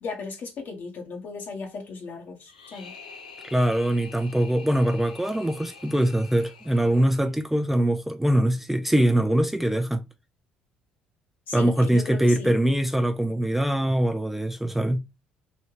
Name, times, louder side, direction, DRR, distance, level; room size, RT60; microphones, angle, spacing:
voice 1, 0.0-2.9 11.5-12.5, left 4 dB, 55° left, 1.2 m, -36 dB
sound 1, 2.5-7.6, left 5 dB, 90° left, 0.5 m, -46 dB
voice 2, 3.5-10.0 11.5-15.0, right 1 dB, 5° right, 0.4 m, -23 dB
3.3 x 2.7 x 2.8 m
hypercardioid pair, 55°, 4 cm